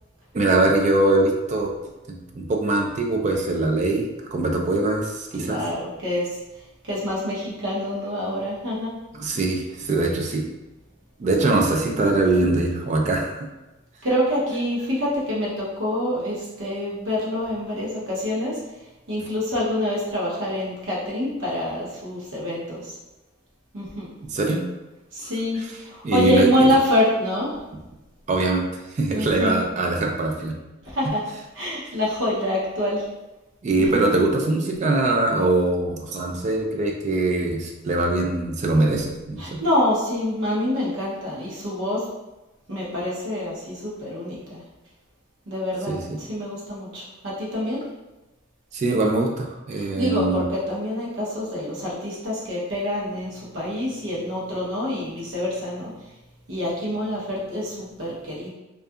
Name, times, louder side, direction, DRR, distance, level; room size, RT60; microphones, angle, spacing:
voice 1, 0.3-1.7 2.3-5.6 9.1-10.4 11.2-13.4 24.3-24.6 26.0-26.5 28.3-28.6 29.0-30.5 33.6-39.6 45.9-46.2 48.7-50.4, right 2 dB, 40° right, 1 dB, 0.3 m, -22 dB
voice 2, 5.4-6.4 6.8-8.9 14.0-18.6 19.1-22.9 23.7-24.1 25.1-27.6 29.1-29.6 30.8-31.2 31.5-33.0 33.8-34.1 39.4-42.0 42.7-44.6 45.5-47.8 49.8-55.9 56.5-58.5, left 1 dB, 80° right, -6 dB, 0.7 m, -26 dB
2.3 x 2.3 x 2.6 m, 1.0 s
head